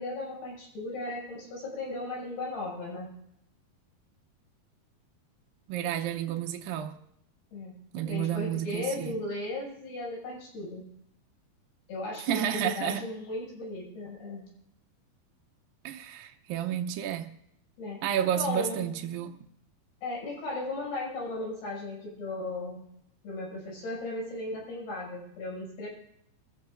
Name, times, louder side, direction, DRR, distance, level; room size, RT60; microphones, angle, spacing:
voice 1, 0.0-3.1 7.5-7.7 8.1-10.9 11.9-14.4 17.8-18.1 18.3-18.9 20.0-22.8 23.2-25.9, left 2 dB, 85° left, 8.9 m, -36 dB
voice 2, 5.7-7.0 7.9-9.1 12.3-13.0 15.8-17.3 18.0-19.3, right 10 dB, 70° right, 2.4 m, -31 dB
23.5 x 14.5 x 2.6 m
omnidirectional pair, 4.6 m